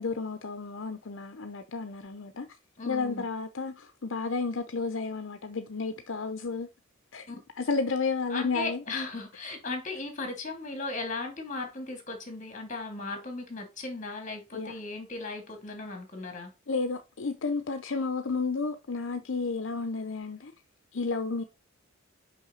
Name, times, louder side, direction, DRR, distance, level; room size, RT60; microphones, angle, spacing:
voice 1, 0.0-2.5 2.9-6.7 7.1-7.3 7.6-8.8 14.5-14.7 16.7-20.5 20.9-21.4, left 4 dB, 60° left, 0.7 m, -32 dB
voice 2, 2.8-3.2 7.3-7.4 8.3-16.5, left 3 dB, 35° left, 2.5 m, -37 dB
6.1 x 5.6 x 3.9 m
head